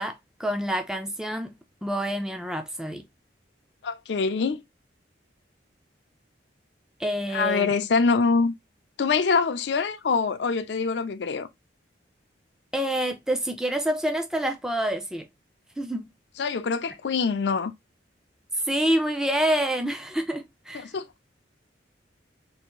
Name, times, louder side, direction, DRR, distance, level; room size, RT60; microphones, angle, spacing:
voice 1, 0.0-1.6 1.8-3.0 7.0-7.7 12.7-15.3 15.8-16.1 18.6-20.9, right 1 dB, 5° right, 0.4 m, -27 dB
voice 2, 3.8-4.6 7.3-8.5 9.0-11.5 16.4-17.7 20.7-21.1, left 4 dB, 65° left, 0.5 m, -24 dB
3.4 x 2.6 x 3.0 m
head